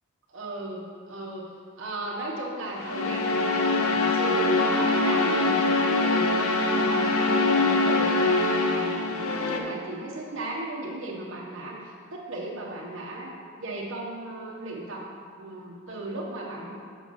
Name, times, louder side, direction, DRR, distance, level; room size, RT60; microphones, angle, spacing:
voice 1, 0.3-0.8 1.1-1.4 1.8-6.3 6.7-13.3 13.6-15.1 15.4-16.7, right 2 dB, 60° right, -3 dB, 1.5 m, -36 dB
sound 1, 2.6-9.6, left 2 dB, 85° left, 0.8 m, -23 dB
7.2 x 6.5 x 5.5 m, 2.2 s
head